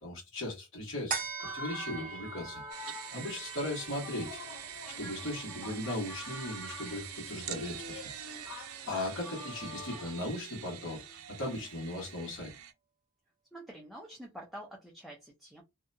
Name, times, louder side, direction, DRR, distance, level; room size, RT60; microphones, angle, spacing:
voice 1, 0.0-2.6 3.1-4.4 5.0-8.0 8.9-12.5, left 1 dB, 65° left, 1.4 m, -38 dB
sound 1, 1.1-7.9 8.3-8.4, right 6 dB, 40° right, 0.6 m, -43 dB
sound 2, 1.4-10.3, left 3 dB, 80° left, 1.0 m, -47 dB
sound 3, 2.7-12.7, right 9 dB, 85° right, 0.5 m, -45 dB
voice 2, 13.5-15.6, right 1 dB, ahead, 0.5 m, -47 dB
2.7 x 2.2 x 2.6 m
head